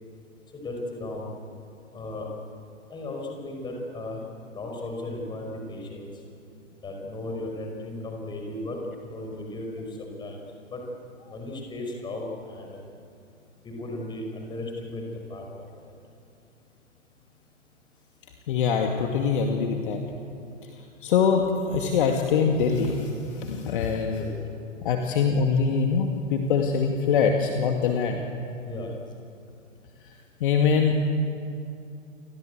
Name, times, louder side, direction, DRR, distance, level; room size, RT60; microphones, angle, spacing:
voice 1, 0.5-1.3 1.9-2.3 2.9-4.2 4.5-6.1 6.8-8.8 9.0-10.4 10.7-10.9 11.3-12.8 13.6-15.9 24.2-24.3 28.6-28.9, left 2 dB, 10° left, 1 dB, 5.5 m, -36 dB
voice 2, 18.5-20.0 20.7-24.2 24.8-28.3 30.0-30.1 30.4-31.0, left 5 dB, 40° left, 3 dB, 2.3 m, -24 dB
30.0 x 24.5 x 8.1 m, 2.5 s
figure-of-eight pair, 120°, 39 cm